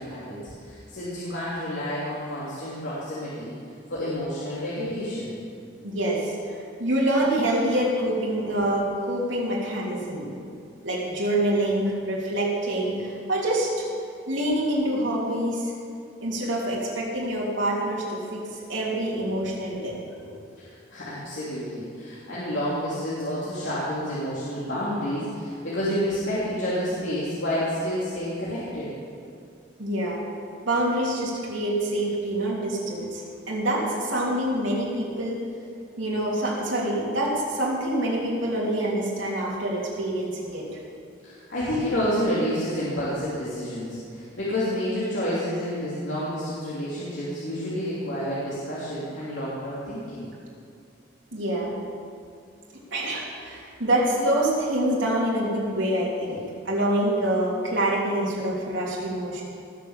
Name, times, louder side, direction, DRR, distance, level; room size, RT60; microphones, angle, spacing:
voice 1, 0.0-3.6 3.9-5.4 20.2-28.9 41.2-50.3, equal, 70° left, -9 dB, 3.2 m, -29 dB
voice 2, 5.8-6.4 6.8-10.3 10.8-13.8 14.3-15.7 16.2-18.4 18.7-20.0 29.8-30.2 30.6-35.4 36.0-40.7 51.3-51.8 52.9-59.4, right 1 dB, 85° right, -5 dB, 3.3 m, -26 dB
19.5 x 6.6 x 7.4 m, 2.4 s
head